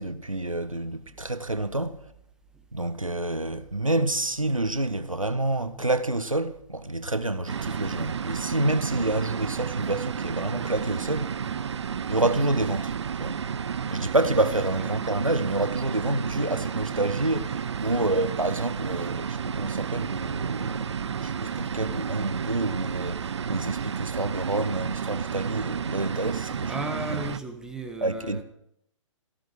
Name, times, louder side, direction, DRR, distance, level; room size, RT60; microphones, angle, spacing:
voice 1, 0.0-2.1 2.7-11.3 12.1-13.4 13.9-26.8 27.1-27.3 28.0-28.4, right 2 dB, 90° right, 0.9 m, -28 dB
sound 1, 7.5-27.4, right 7 dB, 60° right, 0.6 m, -32 dB
voice 2, 26.7-28.4, right 2 dB, 5° right, 1.5 m, -35 dB
15.0 x 13.5 x 4.9 m
figure-of-eight pair, 125°, 17 cm